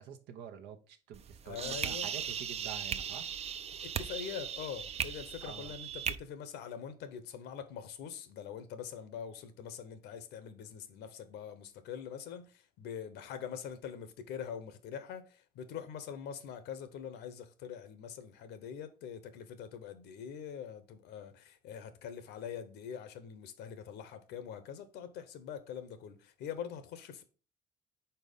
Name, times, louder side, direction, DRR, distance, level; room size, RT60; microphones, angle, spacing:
voice 1, 0.0-3.3 5.4-5.7, right 8 dB, 90° right, 1.0 m, -47 dB
sound 1, 1.1-6.1, right 8 dB, 40° right, 0.4 m, -38 dB
voice 2, 1.5-2.1 3.8-27.2, left 8 dB, 80° left, 0.9 m, -44 dB
4.5 x 4.3 x 5.3 m
cardioid pair, 110°, 17 cm